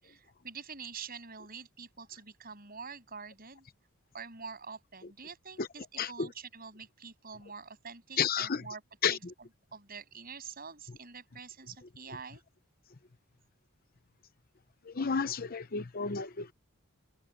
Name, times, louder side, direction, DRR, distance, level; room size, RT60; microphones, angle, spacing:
voice 1, 0.0-3.7 4.1-8.8 9.1-9.2 9.7-12.4, right 5 dB, 45° right, 7.7 m, -46 dB
voice 2, 6.0-6.3 8.2-8.6 9.0-9.3 14.8-16.5, left 6 dB, 45° left, 0.8 m, -31 dB
head